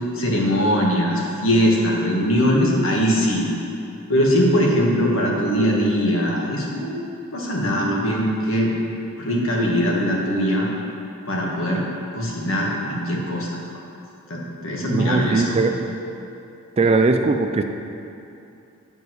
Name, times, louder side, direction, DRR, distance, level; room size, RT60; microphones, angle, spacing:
voice 1, 0.2-3.5 4.1-7.1 7.3-8.7 9.2-10.7 11.3-11.8 12.1-13.5 14.3-15.6, equal, 60° left, -2 dB, 1.6 m, -21 dB
voice 2, 14.8-15.8 16.8-17.6, right 3 dB, 30° right, 6 dB, 0.4 m, -19 dB
9.4 x 5.4 x 6.1 m, 2.7 s
head